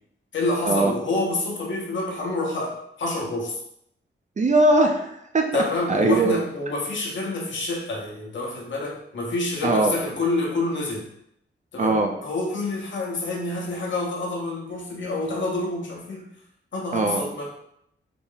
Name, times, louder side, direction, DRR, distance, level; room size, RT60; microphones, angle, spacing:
voice 1, 0.3-3.6 5.5-11.1 11.7-16.3 16.7-17.5, left 2 dB, 65° left, -2 dB, 1.0 m, -27 dB
voice 2, 4.4-5.6 5.9-6.4 9.6-10.0 11.8-12.1 16.9-17.2, right 2 dB, 35° right, 3 dB, 0.5 m, -20 dB
3.8 x 2.1 x 3.8 m, 0.75 s
wide cardioid pair, 100°, 21 cm